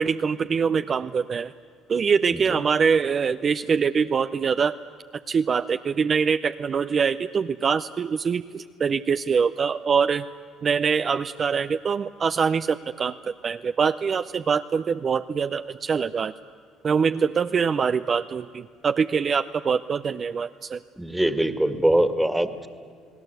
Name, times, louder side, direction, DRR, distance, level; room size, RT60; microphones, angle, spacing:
voice 1, 0.0-1.5 1.9-4.8 5.3-10.3 10.6-16.3 16.8-20.8, right 6 dB, 40° right, 10 dB, 0.6 m, -24 dB
voice 2, 21.0-22.7, right 1 dB, 5° right, 10 dB, 1.9 m, -22 dB
29.5 x 18.5 x 8.1 m, 2.2 s
supercardioid pair, 85°, 0 cm